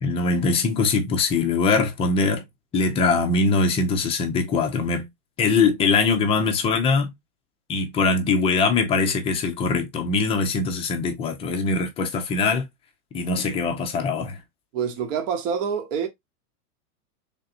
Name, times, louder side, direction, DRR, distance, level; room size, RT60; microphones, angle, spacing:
voice 1, 0.0-2.4 2.7-5.1 5.4-7.1 7.7-12.7 13.1-14.4, left 4 dB, 15° left, 0.4 m, -22 dB
voice 2, 14.7-16.1, right 7 dB, 55° right, 1.0 m, -26 dB
3.7 x 3.4 x 2.7 m
hypercardioid pair, 135°, 46 cm